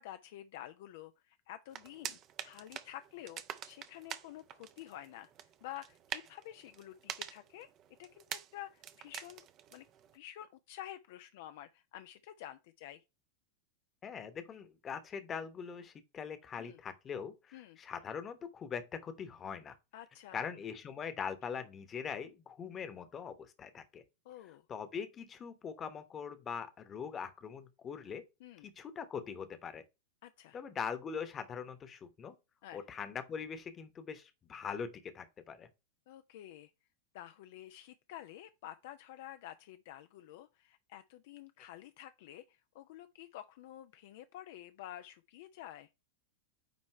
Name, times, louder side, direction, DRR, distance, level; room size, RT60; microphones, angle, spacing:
voice 1, 0.0-5.3 5.6-7.7 8.0-9.4 9.7-9.8 10.1-13.0 16.6-16.8 17.5-17.8 19.9-20.5 24.3-24.6 28.4-28.7 30.2-30.6 32.6-32.8 36.1-36.7 37.1-45.9, left 13 dB, 50° left, 0.4 m, -50 dB
sound 1, 1.7-10.2, right 10 dB, 35° right, 0.6 m, -47 dB
voice 2, 14.0-19.8 20.3-24.0 24.7-28.2 28.6-29.8 30.5-32.4 32.7-35.7, left 7 dB, 25° left, 1.0 m, -42 dB
9.2 x 3.1 x 4.4 m
figure-of-eight pair, 90°, 0 cm